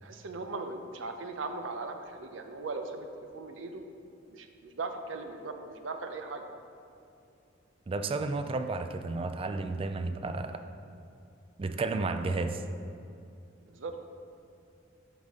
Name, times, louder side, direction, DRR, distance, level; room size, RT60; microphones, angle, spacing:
voice 1, 0.0-3.8 4.3-6.5 13.7-13.9, right 3 dB, 75° right, 6 dB, 0.6 m, -39 dB
voice 2, 7.9-10.6 11.6-12.6, right 3 dB, 30° right, 8 dB, 0.3 m, -32 dB
11.5 x 4.1 x 3.6 m, 2.6 s
head